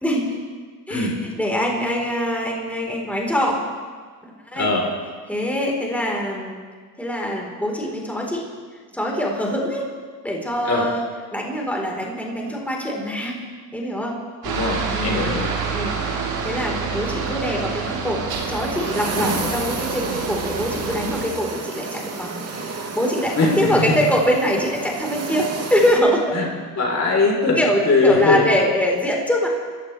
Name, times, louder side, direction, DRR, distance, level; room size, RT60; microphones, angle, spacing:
voice 1, 0.0-0.4 0.9-1.1 1.4-3.6 4.2-4.7 5.3-6.6 7.0-8.4 8.9-9.9 10.2-11.0 11.3-13.4 13.7-14.2 14.9-15.3 15.7-22.4 22.7-26.4 27.6-29.5, equal, 5° left, -1 dB, 4.1 m, -23 dB
voice 2, 4.5-4.9 10.6-10.9 14.4-15.5 19.1-19.4 23.4-24.0 26.3-26.5 26.8-27.6 27.9-28.5, left 3 dB, 35° left, 0 dB, 3.9 m, -20 dB
Aircraft, 14.4-21.2, right 5 dB, 55° right, 4.7 m, -28 dB
sound 1, 18.3-26.0, right 4 dB, 35° right, 2.7 m, -31 dB
26.0 x 15.5 x 3.4 m, 1.5 s
supercardioid pair, 95°, 45 cm